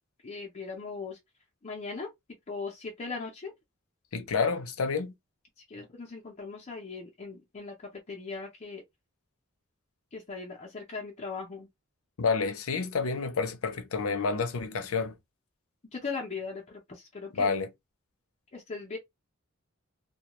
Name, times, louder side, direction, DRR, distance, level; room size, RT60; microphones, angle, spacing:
voice 1, 0.2-1.2 1.6-2.1 2.5-3.5 5.7-8.8 10.1-11.7 15.9-17.5 18.5-19.0, left 4 dB, 35° left, 0.6 m, -39 dB
voice 2, 4.1-5.1 12.2-15.2 17.3-17.7, left 4 dB, 85° left, 0.6 m, -29 dB
2.3 x 2.2 x 2.9 m
head